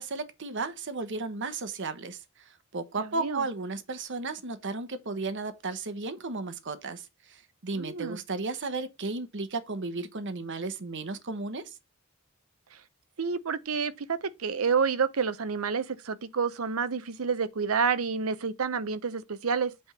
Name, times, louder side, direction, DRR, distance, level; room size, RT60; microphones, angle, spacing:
voice 1, 0.0-11.7, right 3 dB, 60° right, 1.0 m, -34 dB
voice 2, 3.0-3.4 7.7-8.2 13.2-19.7, right 5 dB, 80° right, 0.8 m, -29 dB
8.5 x 3.6 x 5.8 m
head